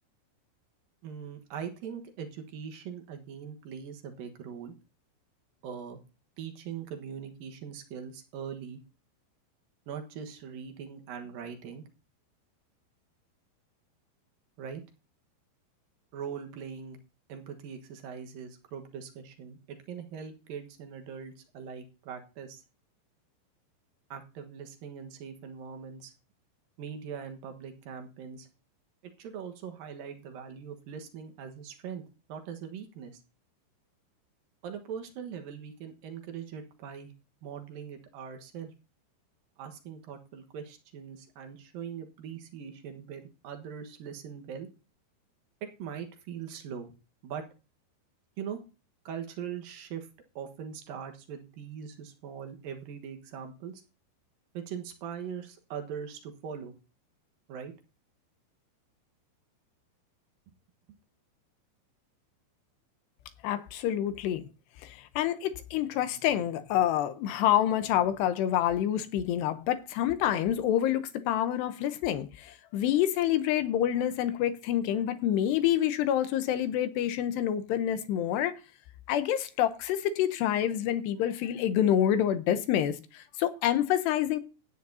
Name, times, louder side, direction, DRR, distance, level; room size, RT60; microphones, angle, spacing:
voice 1, 1.0-4.7 5.6-6.0 6.4-8.8 9.9-11.8 14.6-14.8 16.1-17.0 17.3-22.6 24.1-26.1 26.8-28.5 29.2-32.0 32.3-33.2 34.6-37.1 37.4-38.7 39.6-44.7 45.6-46.9 47.2-47.4 48.4-48.6 49.0-50.1 50.4-53.8 54.5-56.7 57.5-57.7, right 7 dB, 65° right, 2.5 m, -41 dB
voice 2, 63.4-64.4 64.8-78.5 79.1-84.4, left 11 dB, 75° left, 2.7 m, -27 dB
17.0 x 9.4 x 2.7 m
omnidirectional pair, 5.4 m